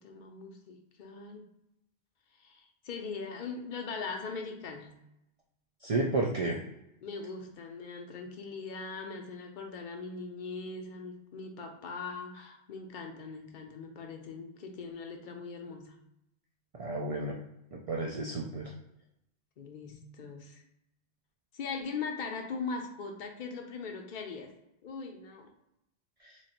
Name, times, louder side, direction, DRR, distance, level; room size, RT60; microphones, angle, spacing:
voice 1, 0.0-1.5 2.4-5.0 7.0-16.0 19.6-20.6 21.5-24.5 24.8-25.5, left 4 dB, 50° left, 3 dB, 0.7 m, -40 dB
voice 2, 5.8-6.6 16.8-17.4 17.7-18.7, right 2 dB, 50° right, -1 dB, 0.4 m, -31 dB
3.1 x 2.5 x 4.1 m, 0.85 s
omnidirectional pair, 1.2 m